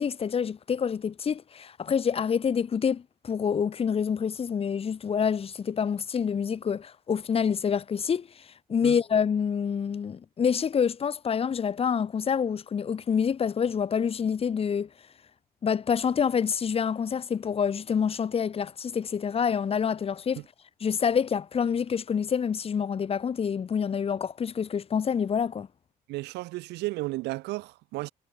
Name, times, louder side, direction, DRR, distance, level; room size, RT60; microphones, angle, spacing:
voice 1, 0.0-8.3 8.7-14.9 15.6-20.4 20.8-25.7, left 7 dB, 35° left, 1.5 m, -27 dB
voice 2, 26.1-28.1, right 20 dB, 90° right, 1.9 m, -33 dB
cardioid pair, 110°, 17 cm